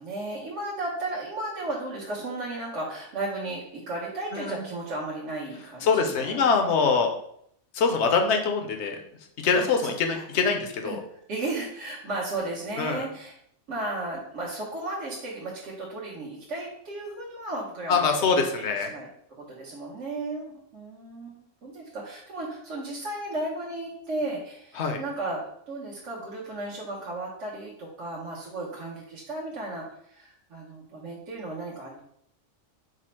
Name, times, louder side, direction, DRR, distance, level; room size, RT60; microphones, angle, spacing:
voice 1, 0.0-6.4 6.7-7.0 9.5-10.5 10.8-13.3 13.7-19.1 19.4-25.4 25.7-32.0, right 2 dB, 70° right, -5 dB, 1.2 m, -35 dB
voice 2, 5.8-7.1 7.7-9.0 9.4-11.0 12.8-13.0 17.9-18.9 24.8-25.0, left 5 dB, 70° left, 4 dB, 0.9 m, -24 dB
4.9 x 2.0 x 4.3 m, 0.69 s
omnidirectional pair, 1.3 m